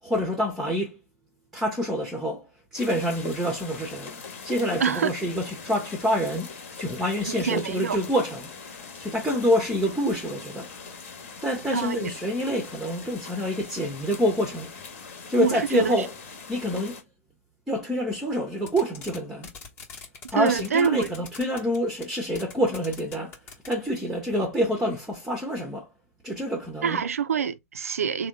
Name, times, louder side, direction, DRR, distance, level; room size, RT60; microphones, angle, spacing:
voice 1, 0.0-1.0 1.5-8.5 9.0-10.7 11.4-14.7 15.1-16.1 16.5-17.0 17.7-19.5 20.3-23.4 23.7-25.9 26.2-27.0, equal, 5° right, 0.7 m, -27 dB
sound 1, 2.8-17.0, left 5 dB, 50° left, 1.1 m, -42 dB
voice 2, 4.8-5.1 7.3-8.0 11.7-12.1 15.4-16.0 20.3-21.1 26.8-28.3, right 7 dB, 70° right, 0.4 m, -25 dB
sound 2, 18.6-19.2 19.4-21.8 22.0-22.1 22.3-23.7, left 5 dB, 25° left, 0.9 m, -41 dB
3.5 x 2.1 x 3.7 m
figure-of-eight pair, 110°, 8 cm